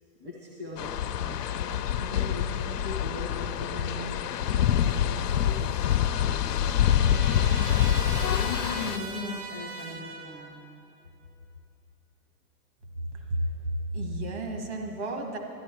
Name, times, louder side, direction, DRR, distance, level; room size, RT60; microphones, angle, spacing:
voice 1, 0.2-10.6, left 2 dB, 20° right, -5 dB, 0.6 m, -40 dB
georgia kingsland gas, 0.8-9.0, left 10 dB, 85° left, 0.7 m, -26 dB
Trumpet, 5.8-10.5, right 4 dB, 80° right, 2.0 m, -40 dB
voice 2, 13.1-15.4, right 1 dB, 45° right, 2 dB, 1.6 m, -32 dB
13.0 x 11.0 x 4.5 m, 2.8 s
hypercardioid pair, 175°, 46 cm